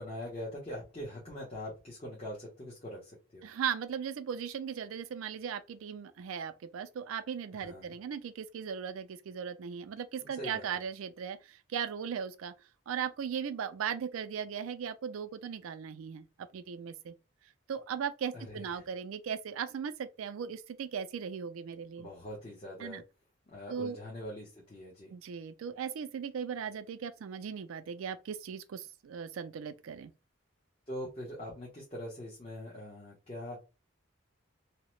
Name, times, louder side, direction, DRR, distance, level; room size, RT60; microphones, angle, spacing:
voice 1, 0.0-3.5 7.5-7.9 10.2-10.8 18.3-18.9 22.0-23.0 23.5-25.1 30.9-33.6, left 1 dB, 30° left, 0.7 m, -43 dB
voice 2, 3.4-12.5 12.9-16.3 16.5-17.1 17.7-22.1 22.8-23.0 23.7-24.0 25.1-30.1, right 7 dB, 85° right, 0.4 m, -38 dB
2.8 x 2.0 x 3.0 m
head